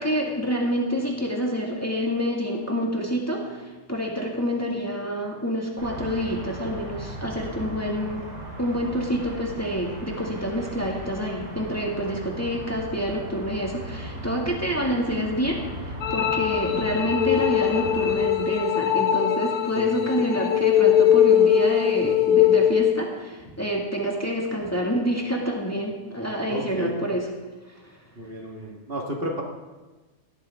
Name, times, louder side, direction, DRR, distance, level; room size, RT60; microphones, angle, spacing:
voice 1, 0.0-8.2 8.6-27.2 27.8-27.9, equal, 10° left, -1 dB, 1.9 m, -27 dB
sound 1, 5.8-18.2, right 1 dB, 90° right, 5.0 m, -37 dB
sound 2, 16.0-23.0, left 10 dB, 90° left, 1.6 m, -21 dB
voice 2, 26.5-26.9 28.2-29.4, equal, 45° right, 0 dB, 1.8 m, -32 dB
18.0 x 13.0 x 3.5 m, 1.2 s
omnidirectional pair, 1.5 m